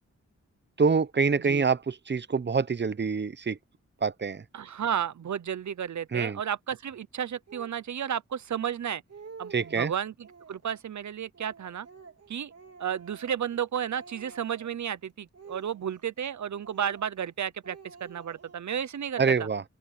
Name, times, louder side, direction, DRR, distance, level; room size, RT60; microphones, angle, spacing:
voice 1, 0.8-3.6 4.0-4.4 6.1-6.4 9.5-9.9 19.2-19.6, right 5 dB, 40° right, 0.9 m, -26 dB
voice 2, 4.5-9.0 9.4-11.9 12.3-12.5 12.8-19.5, right 9 dB, 75° right, 0.8 m, -33 dB
Speech, 7.5-7.8 8.5-8.6 8.9-9.8 10.2-10.8 11.3-13.6 13.9-14.8 15.3-16.3 16.6-17.3 17.6-18.8, right 5 dB, 60° right, 3.4 m, -50 dB
open air
wide cardioid pair, 90°, 29 cm